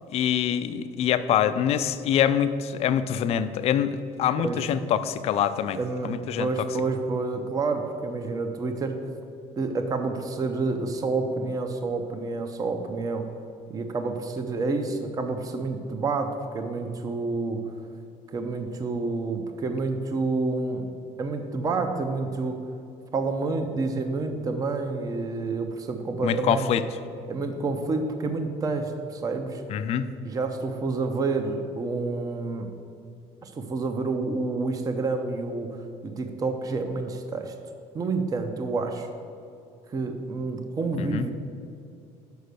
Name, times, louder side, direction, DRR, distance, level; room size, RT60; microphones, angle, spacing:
voice 1, 0.1-5.8 6.0-6.5 26.2-26.8 29.7-30.1 40.9-41.3, left 9 dB, 50° left, 12 dB, 0.4 m, -25 dB
voice 2, 5.8-9.0 9.6-13.3 13.7-17.7 18.3-20.8 21.2-22.6 23.1-26.7 27.3-29.6 30.2-32.7 33.4-37.5 37.9-39.1 39.9-41.3, right 3 dB, 25° right, 7 dB, 0.6 m, -29 dB
6.4 x 5.5 x 6.7 m, 2.5 s
cardioid pair, 135°, 13 cm